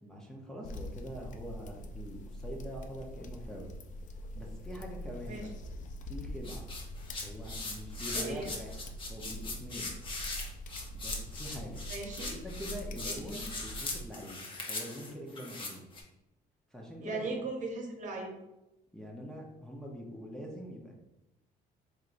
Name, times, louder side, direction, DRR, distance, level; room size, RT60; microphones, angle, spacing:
voice 1, 0.0-3.7 4.3-5.5 6.1-6.7 7.2-8.7 9.1-9.9 10.9-11.9 12.3-14.4 14.7-15.8 16.7-17.3 18.9-20.9, equal, 5° left, -3 dB, 0.8 m, -44 dB
sound 1, 0.6-14.1, equal, 50° left, 0.5 m, -44 dB
sound 2, 6.4-16.0, left 3 dB, 30° left, 0.9 m, -40 dB
voice 2, 8.1-8.5 11.9-12.4 13.0-13.4 17.0-18.3, right 3 dB, 45° right, 1 dB, 1.1 m, -38 dB
4.4 x 3.5 x 2.6 m, 0.93 s
cardioid pair, 110°, 17 cm